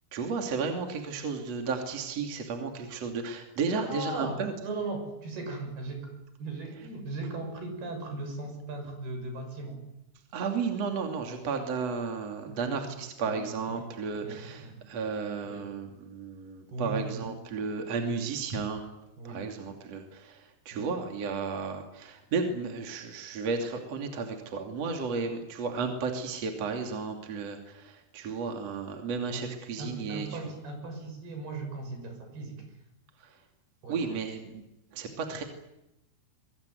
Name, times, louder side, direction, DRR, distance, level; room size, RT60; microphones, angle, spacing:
voice 1, 0.1-4.5 10.3-18.8 19.2-30.4 33.2-33.4 33.9-34.6 34.9-35.4, right 5 dB, 45° right, 4 dB, 3.5 m, -33 dB
voice 2, 3.7-9.8 12.5-12.8 13.2-13.4 13.7-13.8 14.2-14.8 15.4-15.7 16.7-17.3 18.0-18.2 19.2-19.4 20.7-20.9 29.3-29.4 29.8-32.7 33.8-34.2, right 2 dB, 75° right, 5 dB, 8.6 m, -38 dB
24.0 x 23.0 x 9.4 m, 0.87 s
omnidirectional pair, 4.5 m